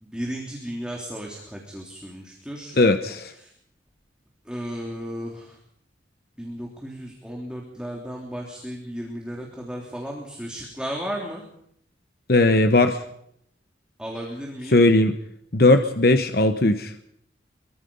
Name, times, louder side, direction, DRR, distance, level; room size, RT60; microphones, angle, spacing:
voice 1, 0.0-2.8 3.4-3.5 4.5-5.5 6.4-11.4 14.0-14.8, equal, 5° right, -1 dB, 3.2 m, -34 dB
voice 2, 2.8-3.3 12.3-13.0 14.7-15.1 15.5-16.9, left 2 dB, 55° left, 7 dB, 1.0 m, -18 dB
24.0 x 23.5 x 5.5 m, 0.73 s
head